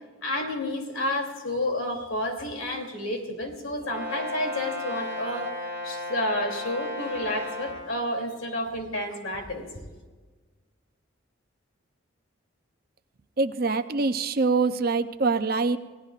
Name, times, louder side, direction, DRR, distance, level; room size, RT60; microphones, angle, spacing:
voice 1, 0.2-5.5 5.8-9.7, left 1 dB, 80° left, 2 dB, 3.1 m, -30 dB
Brass instrument, 3.8-7.8, left 1 dB, 10° right, 6.2 m, -34 dB
voice 2, 13.4-15.8, right 3 dB, 45° right, 10 dB, 0.6 m, -24 dB
30.0 x 17.5 x 2.5 m, 1.4 s
head